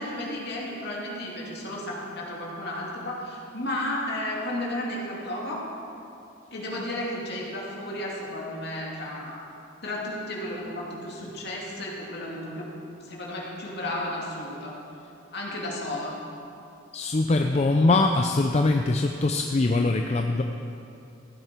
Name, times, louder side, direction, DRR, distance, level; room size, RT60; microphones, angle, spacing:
voice 1, 0.0-5.7 6.5-9.5 9.8-12.8 13.0-14.8 15.3-16.2, left 1 dB, 60° left, -4 dB, 2.5 m, -33 dB
voice 2, 16.9-20.4, left 2 dB, 35° left, 4 dB, 0.5 m, -22 dB
15.5 x 10.0 x 4.5 m, 2.6 s
head